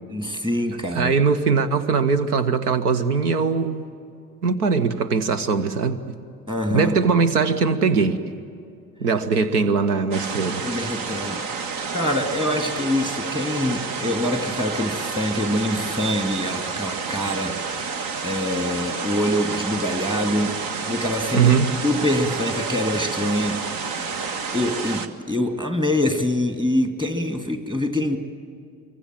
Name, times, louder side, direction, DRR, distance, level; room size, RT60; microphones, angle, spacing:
voice 1, 0.1-1.1 6.5-7.0 10.6-11.4 11.9-18.0 18.2-20.6 20.8-21.5 21.8-23.6 24.5-28.2, left 1 dB, 10° right, 6 dB, 2.4 m, -24 dB
voice 2, 0.9-3.8 4.4-6.2 6.7-8.2 9.0-10.6 21.3-21.7, right 5 dB, 75° right, 14 dB, 1.0 m, -21 dB
sound 1, 10.1-25.1, right 5 dB, 55° right, 1.6 m, -30 dB
24.5 x 24.0 x 7.5 m, 2.5 s
figure-of-eight pair, 60°, 46 cm